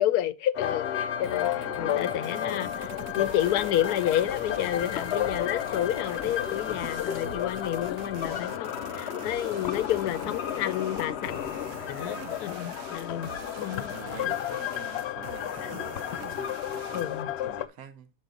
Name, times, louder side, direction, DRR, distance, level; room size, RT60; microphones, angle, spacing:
voice 1, 0.0-11.3 11.9-13.3 13.6-13.9 15.6-15.7 16.9-17.3, left 12 dB, 85° left, 1.1 m, -30 dB
sound 1, 0.5-17.7, left 11 dB, 70° left, 0.6 m, -32 dB
sound 2, 1.2-17.2, right 12 dB, 85° right, 1.1 m, -46 dB
sound 3, 2.7-8.6, left 4 dB, 50° left, 1.1 m, -49 dB
voice 2, 8.9-9.2 12.0-12.5 13.6-18.1, right 8 dB, 70° right, 1.2 m, -48 dB
6.5 x 6.0 x 3.7 m
omnidirectional pair, 1.6 m